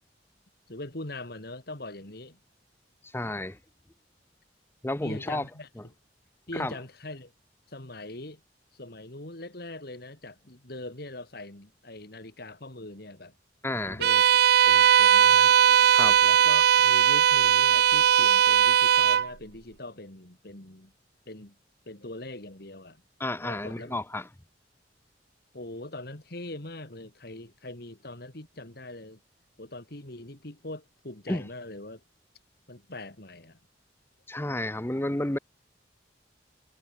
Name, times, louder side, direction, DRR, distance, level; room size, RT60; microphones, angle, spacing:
voice 1, 0.7-2.4 5.0-5.9 6.5-7.3 7.7-8.4 8.7-13.4 13.8-14.3 14.6-15.5 16.2-20.9 21.3-21.6 21.9-23.0 23.4-24.0 25.5-29.2 29.6-32.0 32.7-33.6, left 2 dB, 60° left, 3.0 m, -41 dB
voice 2, 3.1-3.6 4.8-5.4 6.5-6.7 13.6-14.0 15.9-16.2 23.2-24.3 31.3-31.4 34.3-35.4, left 1 dB, 15° left, 0.8 m, -31 dB
Bowed string instrument, 14.0-19.3, right 9 dB, 60° right, 0.3 m, -19 dB
head